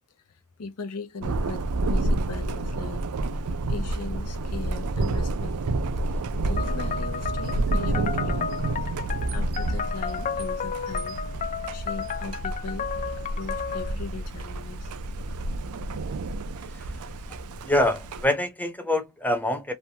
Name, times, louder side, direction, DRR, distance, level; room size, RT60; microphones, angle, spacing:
voice 1, 0.6-3.0 3.7-5.5 6.4-8.6 9.3-11.2 11.7-12.9 13.2-14.9, left 4 dB, 85° left, 0.7 m, -39 dB
Thunder, 1.2-18.3, right 2 dB, 70° right, 0.4 m, -29 dB
sound 1, 6.6-14.0, left 7 dB, 35° left, 0.3 m, -33 dB
voice 2, 17.6-19.7, left 1 dB, 5° left, 0.7 m, -25 dB
3.2 x 2.2 x 2.7 m
head